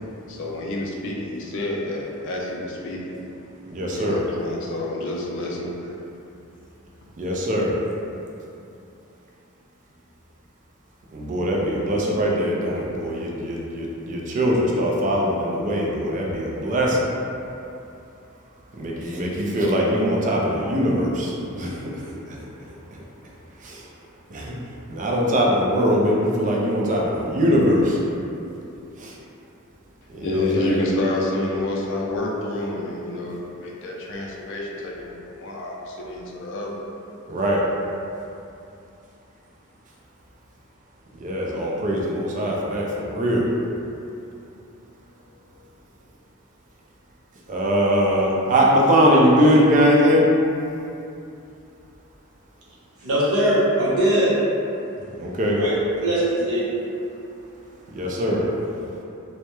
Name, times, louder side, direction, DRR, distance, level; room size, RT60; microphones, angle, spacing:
voice 1, 0.3-3.1 3.9-6.0 30.2-36.8, left 1 dB, 60° left, -3 dB, 0.4 m, -28 dB
voice 2, 3.7-4.2 7.2-7.7 11.1-17.1 18.7-22.4 23.6-23.8 24.3-24.5 24.9-28.0 29.0-29.1 30.1-30.8 37.3-37.6 41.2-43.5 47.5-50.3 55.2-55.6 57.9-58.5, equal, 35° right, -3 dB, 0.4 m, -21 dB
voice 3, 53.0-54.4 55.6-55.8 56.0-56.7, right 1 dB, 70° right, -8 dB, 0.7 m, -20 dB
2.2 x 2.0 x 2.9 m, 2.6 s
head